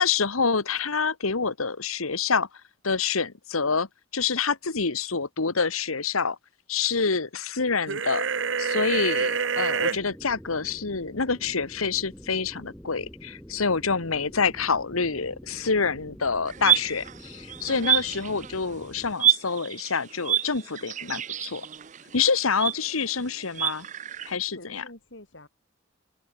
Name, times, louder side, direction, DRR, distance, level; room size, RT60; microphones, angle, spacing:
voice 1, 0.0-2.5 2.8-3.9 4.1-6.4 6.7-8.3 8.6-21.7 22.1-23.9 24.3-24.8, left 5 dB, 90° left, 1.5 m, -27 dB
sound 1, 7.9-10.0, right 5 dB, 60° right, 0.9 m, -26 dB
sound 2, 9.9-19.1, equal, 5° left, 4.3 m, -46 dB
sound 3, 16.5-18.7 19.2-24.3, right 10 dB, 35° right, 0.5 m, -28 dB
voice 2, 24.5-25.5, left 1 dB, 60° left, 4.3 m, -48 dB
head